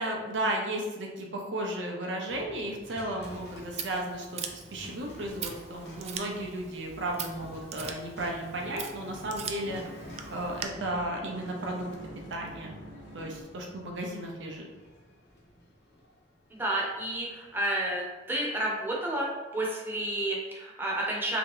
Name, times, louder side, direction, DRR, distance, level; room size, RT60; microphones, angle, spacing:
voice 1, 0.0-11.9 12.3-12.7 13.1-14.7, right 1 dB, 85° right, 0 dB, 0.7 m, -34 dB
sound 1, 2.3-18.5, equal, 60° left, 1.0 m, -50 dB
Scissors, 3.2-10.7, right 7 dB, 35° right, 0.3 m, -42 dB
sound 2, 8.4-13.4, equal, 85° left, 1.1 m, -48 dB
voice 2, 16.5-21.4, right 1 dB, 10° right, -3 dB, 0.7 m, -31 dB
3.4 x 2.9 x 3.6 m, 1.2 s
head